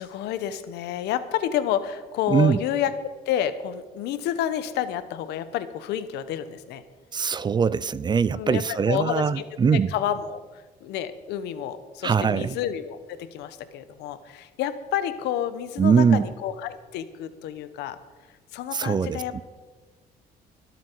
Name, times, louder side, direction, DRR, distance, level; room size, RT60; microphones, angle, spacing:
voice 1, 0.0-6.8 8.3-18.0 18.5-19.4, left 10 dB, 85° left, 12 dB, 1.0 m, -30 dB
voice 2, 2.3-2.6 7.1-9.9 12.0-12.6 15.8-16.3 18.7-19.4, right 6 dB, 25° right, 19 dB, 0.4 m, -22 dB
24.5 x 8.4 x 4.6 m, 1.4 s
cardioid pair, 110°, 17 cm